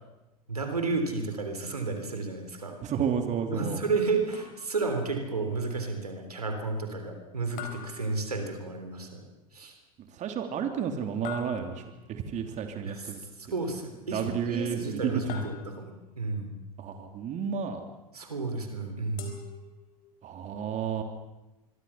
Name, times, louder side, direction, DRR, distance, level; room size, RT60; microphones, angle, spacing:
voice 1, 0.5-2.8 3.5-9.2 9.5-9.8 12.9-13.1 13.4-16.5 18.1-19.3, right 3 dB, 90° right, 5 dB, 3.5 m, -32 dB
voice 2, 2.8-3.8 10.2-11.8 12.1-13.2 14.1-15.5 16.8-17.8 20.2-21.0, right 7 dB, 40° right, 5 dB, 3.2 m, -31 dB
sound 1, 4.3-4.9 7.6-8.8 11.2-12.1 15.3-16.1 19.2-20.2, left 7 dB, 45° left, 4.3 m, -44 dB
25.5 x 23.0 x 5.8 m, 1.0 s
figure-of-eight pair, 80°, 19 cm